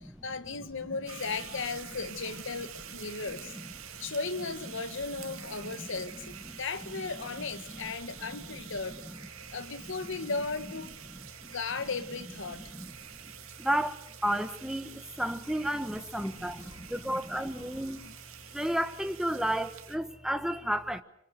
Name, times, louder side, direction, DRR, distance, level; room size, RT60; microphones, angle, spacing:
voice 1, 0.0-3.5 4.0-9.1 9.5-11.0 11.4-12.7 16.1-18.0, left 4 dB, 60° left, 1.5 m, -37 dB
sound 1, 1.1-20.0, right 9 dB, 70° right, 2.4 m, -47 dB
voice 2, 5.3-5.9 8.6-8.7 11.4-11.5 12.5-12.9 13.6-18.1 18.5-21.0, right 1 dB, ahead, 1.2 m, -32 dB
25.0 x 24.5 x 6.6 m
head